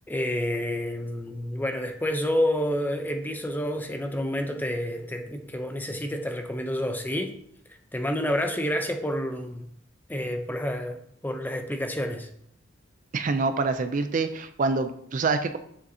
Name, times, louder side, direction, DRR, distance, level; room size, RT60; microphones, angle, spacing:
voice 1, 0.1-7.3 7.9-9.7 10.1-12.3, equal, 10° left, 5 dB, 0.6 m, -29 dB
voice 2, 13.1-15.6, right 3 dB, 40° right, 9 dB, 0.4 m, -26 dB
7.3 x 6.7 x 2.8 m, 0.70 s
head